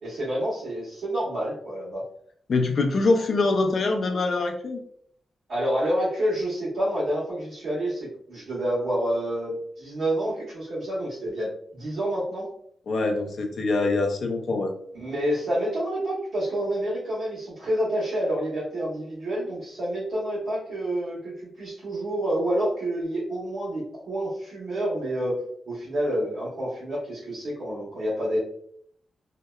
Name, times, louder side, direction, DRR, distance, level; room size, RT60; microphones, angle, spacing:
voice 1, 0.0-2.0 5.5-12.5 14.9-25.4 25.7-28.4, right 1 dB, 70° right, -11 dB, 1.1 m, -28 dB
voice 2, 2.5-4.8 12.9-14.7, left 3 dB, 60° left, 2 dB, 0.4 m, -24 dB
2.7 x 2.1 x 2.3 m, 0.67 s
wide cardioid pair, 120°, 0 cm